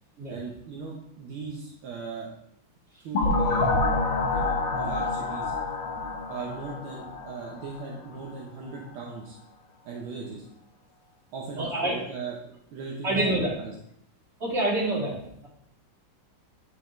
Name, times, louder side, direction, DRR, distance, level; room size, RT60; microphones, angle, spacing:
voice 1, 0.3-2.3 3.0-3.8 4.3-5.5 6.3-9.4 9.8-10.5 11.3-13.8, right 4 dB, 75° right, -2 dB, 1.6 m, -38 dB
sound 1, 3.1-7.8, left 3 dB, 60° left, 0.9 m, -27 dB
voice 2, 11.6-12.0 13.0-13.5 14.4-15.2, right 1 dB, 30° right, -9 dB, 3.0 m, -26 dB
8.4 x 4.7 x 3.1 m, 0.74 s
omnidirectional pair, 2.3 m